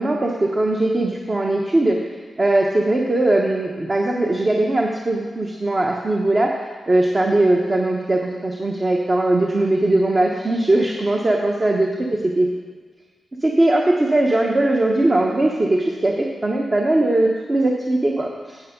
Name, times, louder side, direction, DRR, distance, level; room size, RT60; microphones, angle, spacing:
voice 1, 0.0-2.0 2.4-6.6 6.9-11.9 12.4-12.5 13.4-18.6, right 2 dB, 35° right, 0 dB, 1.0 m, -19 dB
8.6 x 7.7 x 5.2 m, 1.5 s
cardioid pair, 50°, 0 cm